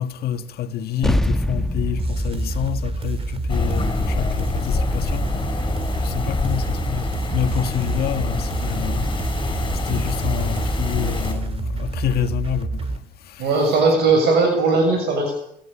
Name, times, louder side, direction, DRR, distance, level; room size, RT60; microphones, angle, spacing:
voice 1, 0.0-5.3 6.0-9.1 9.9-12.8, left 9 dB, 65° left, 1.8 m, -27 dB
sound 1, 1.0-5.8, left 1 dB, ahead, 1.2 m, -26 dB
sound 2, 2.0-13.0, right 3 dB, 35° right, 2.3 m, -28 dB
sound 3, 3.5-11.3, left 4 dB, 25° left, 7.7 m, -26 dB
voice 2, 13.4-15.4, right 3 dB, 75° right, 6.9 m, -18 dB
28.0 x 12.5 x 8.6 m
cardioid pair, 110°, 17 cm